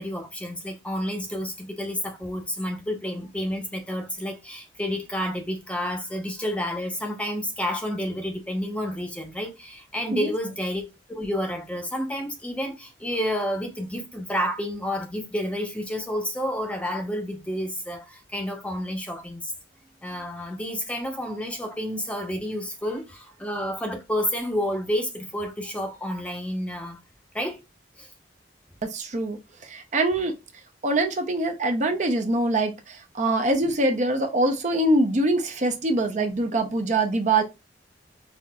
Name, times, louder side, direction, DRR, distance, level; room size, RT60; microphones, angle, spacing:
voice 1, 0.0-10.8 11.1-19.5 20.0-27.0 27.3-27.6 28.0-28.1, equal, 5° left, 0.7 m, -30 dB
voice 2, 28.8-30.3 30.8-37.4, right 2 dB, 40° right, 0.6 m, -24 dB
5.7 x 2.4 x 2.2 m
head